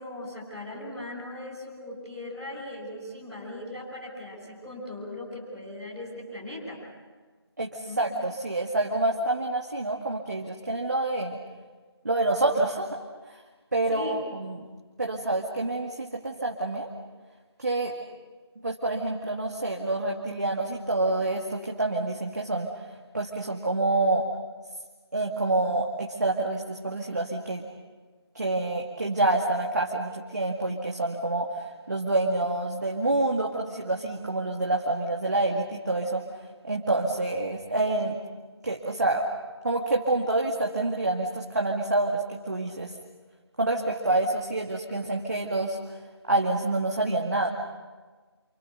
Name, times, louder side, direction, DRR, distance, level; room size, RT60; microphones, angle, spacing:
voice 1, 0.0-6.8 7.8-8.0 13.9-14.2, left 1 dB, ahead, -15 dB, 5.0 m, -38 dB
voice 2, 7.6-11.4 12.0-13.0 13.3-13.4 13.7-14.7 15.0-16.9 17.6-18.0 18.6-22.9 23.1-24.3 25.1-27.6 28.3-36.2 36.7-38.2 38.6-39.3 39.6-42.9 43.6-46.0 46.3-47.5, right 2 dB, 40° right, 0 dB, 2.1 m, -27 dB
28.5 x 28.0 x 6.8 m, 1.4 s
figure-of-eight pair, 170°, 14 cm